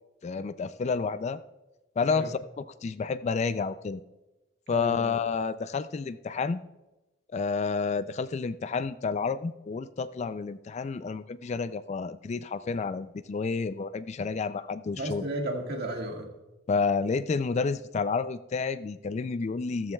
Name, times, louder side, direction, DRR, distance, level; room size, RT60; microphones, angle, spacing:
voice 1, 0.2-1.4 2.0-4.0 4.7-6.6 7.3-15.3 16.7-19.9, left 5 dB, 35° left, 14 dB, 0.3 m, -30 dB
voice 2, 4.7-5.2 15.0-16.3, right 1 dB, 55° right, 1 dB, 1.9 m, -33 dB
14.5 x 14.0 x 2.3 m, 1.0 s
head